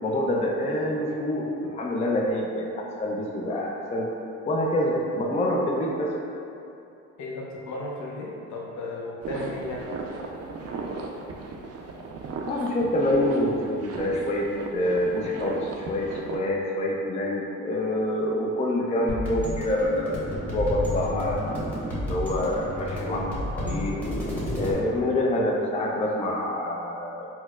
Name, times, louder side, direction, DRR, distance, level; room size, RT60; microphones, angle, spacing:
voice 1, 0.0-1.5 1.7-4.1 4.5-6.1 12.5-21.7 22.0-24.0 24.5-27.3, left 1 dB, 20° left, -2 dB, 0.4 m, -26 dB
voice 2, 7.2-9.9, left 2 dB, 65° left, -2 dB, 0.6 m, -35 dB
sound 1, 9.2-16.4, right 4 dB, 50° right, 0.4 m, -36 dB
sound 2, 19.1-24.7, left 1 dB, 5° left, 1.0 m, -31 dB
4.3 x 2.1 x 2.3 m, 2.7 s
cardioid pair, 80°, 32 cm